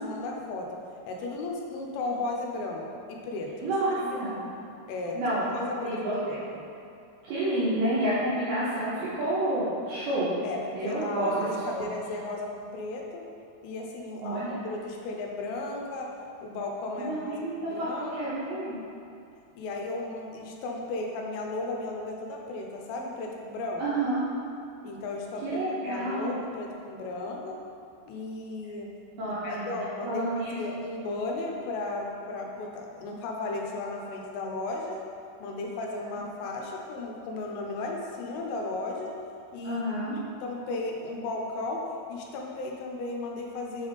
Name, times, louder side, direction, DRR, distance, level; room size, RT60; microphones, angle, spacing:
voice 1, 0.0-0.8 1.1-3.7 4.0-4.2 4.9-6.0 6.2-6.4 10.4-13.3 13.6-16.1 16.4-18.5 19.6-23.8 24.8-27.6 28.1-28.9 29.4-35.0 35.4-39.2 39.5-39.8 40.4-43.9, left 2 dB, 85° left, 0 dB, 3.2 m, -35 dB
voice 2, 3.6-4.4 5.1-5.5 5.8-6.4 7.2-10.4 10.7-11.9 14.2-14.7 17.0-17.9 18.2-18.8 23.8-24.2 25.4-26.3 29.2-29.7 30.0-30.6 39.6-40.2, right 1 dB, 85° right, -11 dB, 2.2 m, -29 dB
7.0 x 3.5 x 4.0 m, 2.6 s
omnidirectional pair, 5.7 m